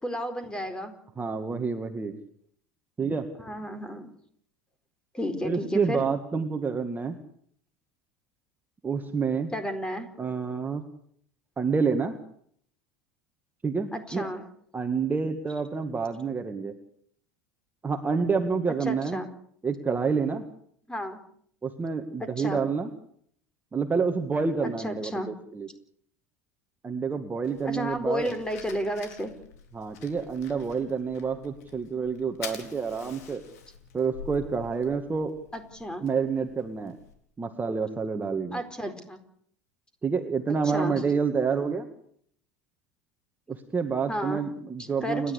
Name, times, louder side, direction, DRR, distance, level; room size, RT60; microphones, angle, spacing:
voice 1, 0.0-1.0 3.4-4.1 5.1-6.1 9.5-10.1 13.9-14.4 18.8-19.3 20.9-21.2 22.4-22.6 24.6-25.3 27.6-29.3 35.5-36.0 38.5-39.2 40.7-41.0 44.1-44.5 45.0-45.2, equal, 10° left, 9 dB, 4.5 m, -32 dB
voice 2, 1.2-2.1 3.0-3.3 5.4-7.2 8.8-9.5 10.2-10.9 11.6-12.2 13.6-14.3 14.7-16.7 17.8-19.2 19.6-20.5 21.6-22.9 23.7-25.7 26.8-28.3 29.7-33.4 33.9-35.4 36.0-37.0 37.4-38.6 40.0-41.9 43.5-45.3, right 5 dB, 20° right, 6 dB, 2.1 m, -28 dB
Fire, 27.4-37.1, left 7 dB, 75° left, 4.4 m, -47 dB
29.5 x 12.0 x 8.5 m, 0.64 s
hypercardioid pair, 80°, 9 cm